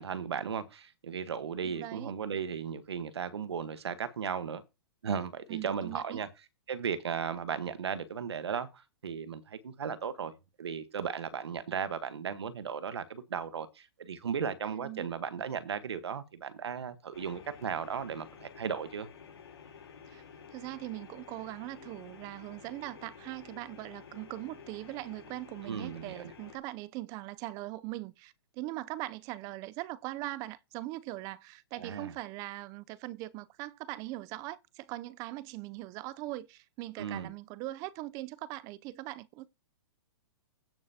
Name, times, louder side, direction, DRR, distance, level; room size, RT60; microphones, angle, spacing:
voice 1, 0.0-4.6 5.0-6.3 6.7-8.7 9.0-10.3 10.6-19.1 25.6-26.3 31.8-32.1 37.0-37.3, right 7 dB, 90° right, 1.2 m, -36 dB
voice 2, 1.6-2.1 5.5-6.2 14.7-15.1 20.1-20.2 20.5-39.5, right 17 dB, 25° right, 0.5 m, -41 dB
sound 1, 17.1-26.6, left 6 dB, 85° left, 3.3 m, -51 dB
16.5 x 5.5 x 2.8 m
hypercardioid pair, 150°, 13 cm